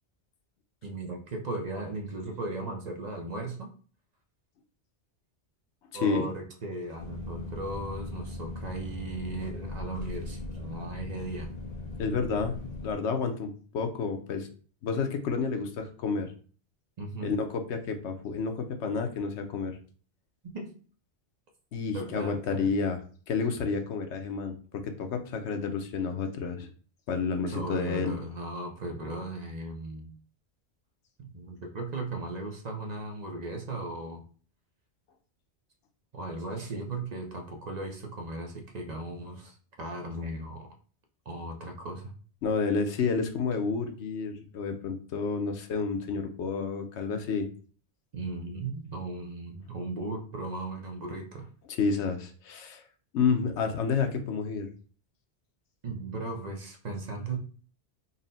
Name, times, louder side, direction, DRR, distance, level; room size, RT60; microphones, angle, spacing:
voice 1, 0.8-3.7 5.9-11.5 17.0-17.3 20.4-20.7 21.9-22.7 27.5-30.1 31.2-34.2 36.1-40.7 41.3-42.1 48.1-51.5 55.8-57.4, right 2 dB, 45° right, 3 dB, 0.6 m, -37 dB
sound 1, 7.0-12.9, left 2 dB, 40° left, 0.8 m, -39 dB
voice 2, 12.0-12.6 12.8-14.5 14.8-16.3 17.2-19.8 21.7-23.0 23.3-26.7 27.1-28.2 42.4-47.5 51.7-52.8 53.1-54.7, left 5 dB, 85° left, 5 dB, 1.0 m, -30 dB
4.0 x 2.1 x 3.9 m, 0.41 s
omnidirectional pair, 1.2 m